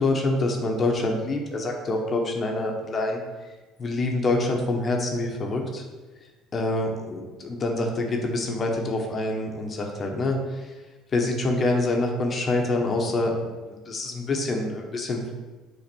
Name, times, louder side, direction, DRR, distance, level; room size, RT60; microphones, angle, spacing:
voice 1, 0.0-5.8 6.2-10.8 11.1-15.3, left 2 dB, 35° left, 1 dB, 1.2 m, -26 dB
6.0 x 3.9 x 6.2 m, 1.2 s
supercardioid pair, 90°, 0 cm